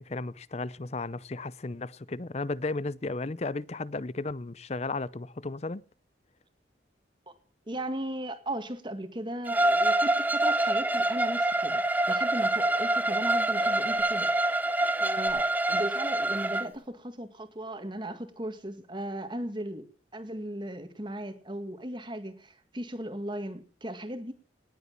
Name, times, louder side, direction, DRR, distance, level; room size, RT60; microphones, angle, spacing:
voice 1, 0.0-5.8, left 3 dB, 35° left, 0.6 m, -34 dB
voice 2, 7.7-14.3 15.0-24.3, right 1 dB, 25° right, 2.0 m, -37 dB
Bowed string instrument, 9.5-16.6, right 2 dB, 10° right, 0.6 m, -26 dB
19.0 x 8.3 x 7.3 m
head